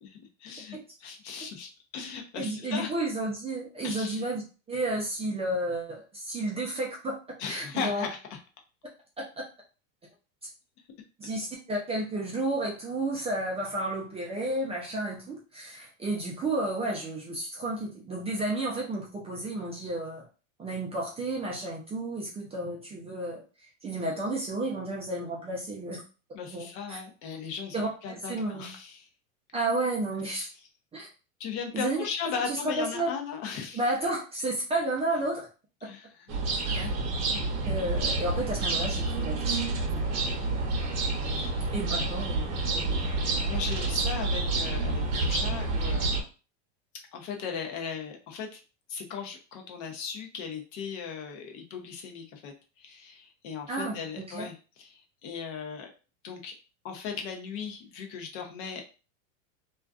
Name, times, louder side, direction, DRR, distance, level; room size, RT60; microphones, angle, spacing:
voice 1, 0.0-2.9 3.8-4.2 7.4-8.2 26.3-29.1 30.2-30.5 31.4-33.8 35.8-37.1 41.4-42.1 43.5-46.2 47.1-48.6 48.9-55.9 56.2-56.5 56.8-58.8, left 6 dB, 45° left, 3 dB, 0.7 m, -38 dB
voice 2, 2.4-4.4 4.7-7.2 7.5-8.1 9.2-9.4 11.2-20.3 20.6-23.4 23.8-26.0 26.5-27.0 27.7-28.7 29.5-30.5 30.9-31.1 31.7-32.0 32.3-33.1 33.7-35.5 36.7-36.9 37.3-37.4 37.6-39.6 39.9-40.4 41.7-42.4 42.7-43.0 43.2-43.5 53.7-54.5, right 2 dB, 15° right, -2 dB, 0.4 m, -32 dB
sound 1, 36.3-46.2, right 3 dB, 40° right, 0.8 m, -29 dB
2.5 x 2.3 x 2.3 m, 0.34 s
supercardioid pair, 120°, 40 cm